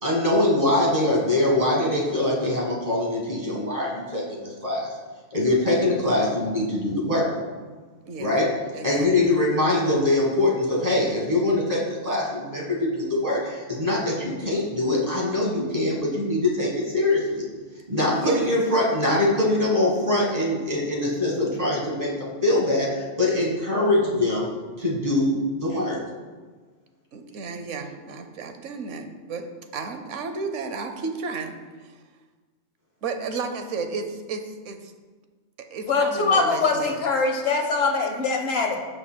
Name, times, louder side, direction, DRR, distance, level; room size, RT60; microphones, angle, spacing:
voice 1, 0.0-4.9 5.3-7.3 8.2-8.5 8.8-17.5 17.9-24.5 24.8-26.0, left 1 dB, 30° right, -4 dB, 1.7 m, -23 dB
voice 2, 8.1-8.4 8.7-9.1 18.1-18.5 27.1-29.5 29.7-31.6 31.8-32.0 33.0-34.9 35.7-37.0, right 4 dB, 85° right, 7 dB, 1.1 m, -33 dB
voice 3, 35.8-38.8, left 4 dB, 60° left, 3 dB, 1.1 m, -23 dB
13.5 x 5.4 x 2.2 m, 1.4 s
omnidirectional pair, 1.2 m